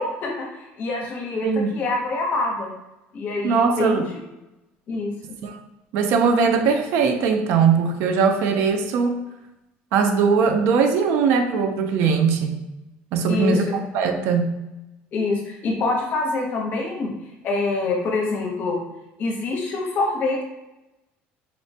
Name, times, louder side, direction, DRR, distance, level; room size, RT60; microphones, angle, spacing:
voice 1, 0.0-2.7 3.1-4.0 4.9-5.1 13.3-13.7 15.1-17.1 17.4-18.8 19.2-20.4, left 3 dB, 45° left, 1 dB, 0.7 m, -25 dB
voice 2, 3.4-4.1 5.4-5.6 5.9-9.2 9.9-12.6 13.1-13.7 13.9-14.5, right 5 dB, 70° right, 5 dB, 0.4 m, -20 dB
4.2 x 2.1 x 2.7 m, 0.97 s
cardioid pair, 150°, 4 cm